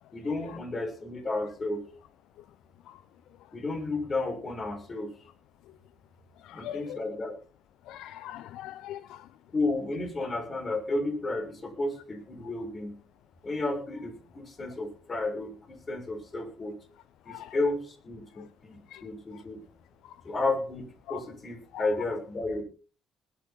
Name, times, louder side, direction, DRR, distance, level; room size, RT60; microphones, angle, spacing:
voice 1, 0.1-1.8 3.5-5.1 6.5-7.3 9.5-12.9 13.4-16.8 17.2-19.6 20.2-22.6, left 2 dB, 35° left, 6.6 m, -32 dB
voice 2, 6.4-7.0 7.9-9.3 17.3-17.5 18.4-18.5 18.9-19.0 21.1-21.2 21.7-21.9, left 13 dB, 75° left, 0.6 m, -41 dB
20.5 x 9.4 x 4.4 m
supercardioid pair, 60°, 0 cm